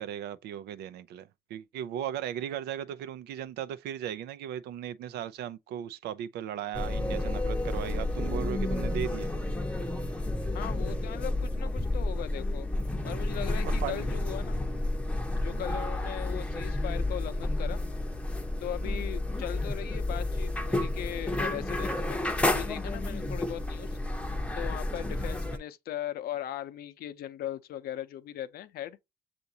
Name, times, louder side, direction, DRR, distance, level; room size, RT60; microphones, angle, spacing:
voice 1, 0.0-9.3 13.8-14.1 15.5-15.8 18.8-19.2 23.2-23.3 24.9-25.2, right 10 dB, 80° right, 0.5 m, -37 dB
sound 1, 6.7-25.6, left 2 dB, 5° left, 0.7 m, -31 dB
voice 2, 10.5-12.7 13.0-14.6 15.3-17.8 18.6-23.9 24.5-29.0, left 11 dB, 65° left, 0.6 m, -39 dB
6.9 x 2.6 x 2.8 m
cardioid pair, 110°, 17 cm